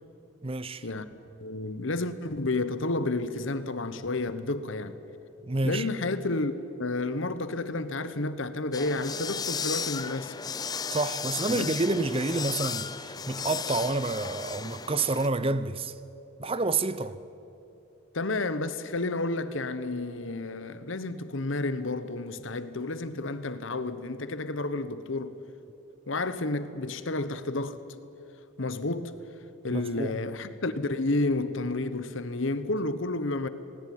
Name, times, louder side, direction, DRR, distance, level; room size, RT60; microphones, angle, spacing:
voice 1, 0.4-0.9 5.5-5.9 10.9-15.9 16.4-17.2 29.7-30.2, right 3 dB, 25° right, 0.6 m, -29 dB
voice 2, 1.4-5.0 5.6-6.5 6.8-10.3 11.5-11.8 18.1-25.4 26.1-27.8 28.6-29.1 29.6-33.5, left 2 dB, 70° left, 1.1 m, -31 dB
sound 1, 8.7-15.3, left 6 dB, 20° left, 0.5 m, -35 dB
19.5 x 19.0 x 9.4 m
head